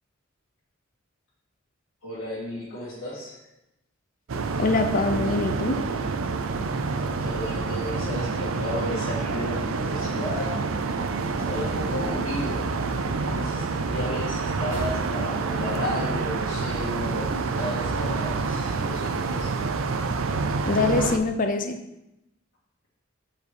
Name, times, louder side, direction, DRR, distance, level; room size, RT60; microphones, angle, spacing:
voice 1, 2.0-3.5 7.2-10.6 11.3-12.6 13.0-19.6, left 1 dB, 85° left, -9 dB, 1.8 m, -34 dB
sound 1, 4.3-21.2, right 4 dB, 80° right, 0.5 m, -28 dB
voice 2, 4.6-5.8 20.6-21.8, left 3 dB, 45° left, 6 dB, 0.6 m, -24 dB
sound 2, 10.3-16.2, right 1 dB, 20° right, 2.5 m, -40 dB
5.0 x 4.9 x 4.8 m, 0.88 s
head